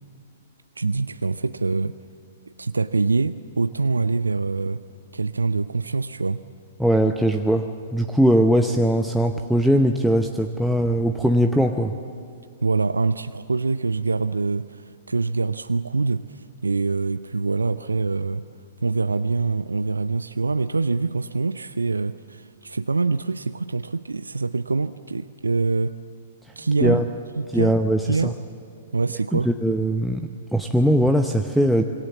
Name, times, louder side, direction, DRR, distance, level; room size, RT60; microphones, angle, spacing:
voice 1, 0.8-1.9 2.6-4.8 5.1-6.4 12.6-18.4 18.8-26.0 26.6-27.0 27.4-27.8 28.1-28.3 28.9-29.5, right 3 dB, 75° right, 13 dB, 0.5 m, -24 dB
voice 2, 6.8-11.9 26.8-27.0 27.5-28.3 29.3-31.8, equal, ahead, 3 dB, 0.8 m, -20 dB
26.0 x 23.5 x 7.3 m, 2.6 s
figure-of-eight pair, 110°, 0 cm